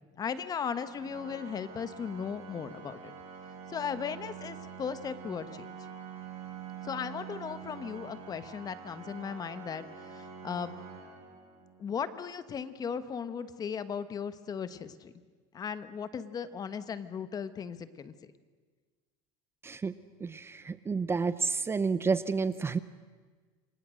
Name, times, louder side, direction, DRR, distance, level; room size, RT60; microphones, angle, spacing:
voice 1, 0.0-3.1 3.7-5.7 6.8-10.8 11.8-15.1 15.5-18.1, left 7 dB, 30° left, 12 dB, 1.4 m, -37 dB
Organ, 0.9-11.8, right 7 dB, 55° right, 5.9 m, -46 dB
voice 2, 19.6-19.9 20.2-22.8, right 4 dB, 20° right, 14 dB, 0.7 m, -30 dB
28.5 x 25.0 x 6.5 m, 1.5 s
cardioid pair, 120°, 12 cm